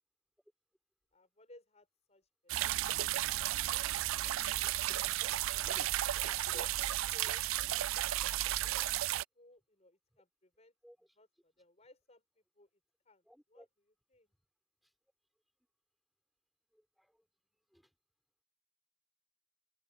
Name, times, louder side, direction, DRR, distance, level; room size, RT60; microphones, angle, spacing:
voice 1, 1.1-2.7 5.5-5.8 6.2-7.5 8.3-10.7 11.2-12.2 12.6-12.7 13.0-13.2 13.5-13.7 14.1-14.3, left 1 dB, 35° left, 6.3 m, -59 dB
sound 1, 2.5-9.2, right 14 dB, 85° right, 0.3 m, -33 dB
voice 2, 13.2-13.7 16.7-17.2 17.7-17.9, equal, ahead, 3.1 m, -57 dB
head